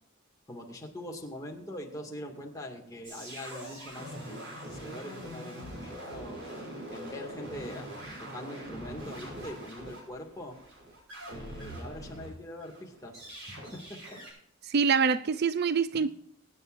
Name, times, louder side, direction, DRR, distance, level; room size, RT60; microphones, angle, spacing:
voice 1, 0.5-6.6 6.9-7.9 8.2-10.6 11.3-14.2 15.9-16.1, left 1 dB, 15° left, 2.2 m, -43 dB
sound 1, 3.0-12.3 12.6-14.3, right 1 dB, 65° right, 6.2 m, -43 dB
voice 2, 14.7-16.1, right 5 dB, 50° right, 0.4 m, -25 dB
23.5 x 9.5 x 2.6 m
head